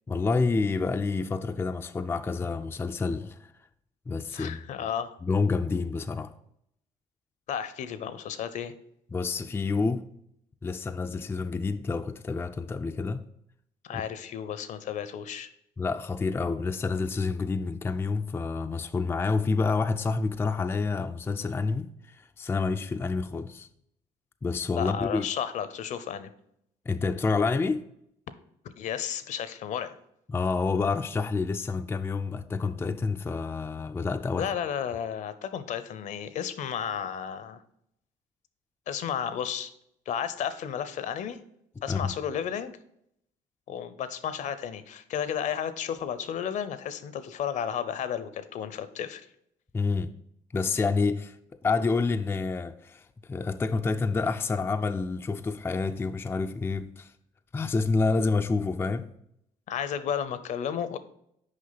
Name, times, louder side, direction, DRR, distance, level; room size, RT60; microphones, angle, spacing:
voice 1, 0.1-3.5 4.1-4.6 5.2-6.3 9.1-10.1 10.6-13.2 13.9-14.0 15.8-23.7 24.4-25.3 26.9-27.8 30.3-34.5 41.9-42.1 49.7-50.1 50.5-51.4 51.6-53.0 53.3-57.1 57.5-59.1, left 4 dB, 15° left, 0.3 m, -28 dB
voice 2, 4.3-5.1 7.5-8.7 13.8-15.5 24.8-26.3 28.6-30.0 34.4-37.6 38.9-39.7 40.1-41.4 41.8-42.8 43.7-49.2 59.7-61.0, left 8 dB, 60° left, 0.6 m, -33 dB
6.4 x 5.0 x 4.0 m
cardioid pair, 85°, 14 cm